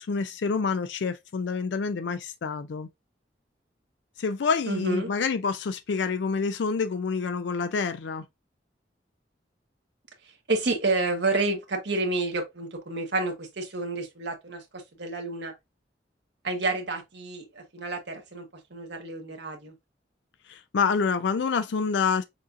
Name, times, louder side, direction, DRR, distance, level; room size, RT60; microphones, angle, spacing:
voice 1, 0.0-2.9 4.2-8.2 20.5-22.2, left 5 dB, 85° left, 0.4 m, -27 dB
voice 2, 4.7-5.1 10.5-15.5 16.4-19.7, right 2 dB, 75° right, 1.3 m, -29 dB
6.4 x 2.5 x 2.5 m
head